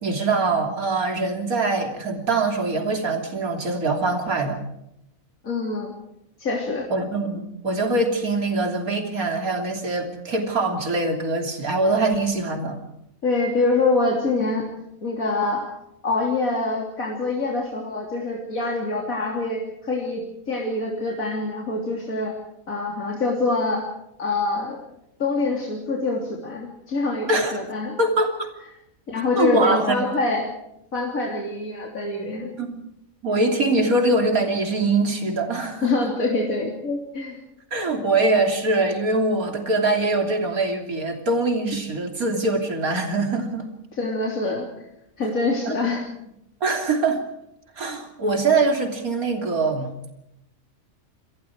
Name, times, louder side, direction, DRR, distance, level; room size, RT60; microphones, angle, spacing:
voice 1, 0.0-4.6 6.9-12.8 27.3-27.5 28.0-28.5 29.4-30.0 32.6-32.8 33.2-36.1 37.7-43.7 45.7-45.8 46.6-47.2 47.8-50.1, right 2 dB, 85° right, 4 dB, 3.6 m, -23 dB
voice 2, 5.4-5.9 6.4-6.9 13.2-14.7 15.0-15.7 16.0-22.3 22.7-23.9 24.2-24.8 25.2-28.0 29.1-30.5 30.9-32.5 35.8-37.4 44.0-44.7 45.2-46.0, left 3 dB, 75° left, -1 dB, 3.7 m, -25 dB
28.5 x 22.0 x 4.7 m, 0.82 s
omnidirectional pair, 1.5 m